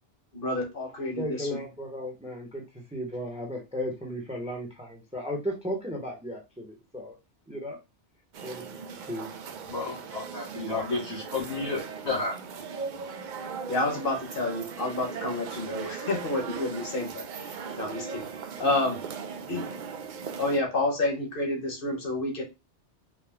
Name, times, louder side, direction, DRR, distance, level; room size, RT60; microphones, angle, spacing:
voice 1, 0.3-1.5 13.7-18.3 18.6-19.0 19.5-19.7 20.4-22.4, left 2 dB, 50° left, 2 dB, 1.4 m, -29 dB
voice 2, 1.2-7.1 7.5-7.8 8.4-8.8 9.1-9.3, equal, 5° right, 1 dB, 0.8 m, -35 dB
sound 1, 8.3-20.6, right 6 dB, 55° right, 0.5 m, -39 dB
voice 3, 9.7-12.4, left 3 dB, 70° left, -3 dB, 2.4 m, -31 dB
4.8 x 2.2 x 3.5 m, 0.25 s
omnidirectional pair, 1.2 m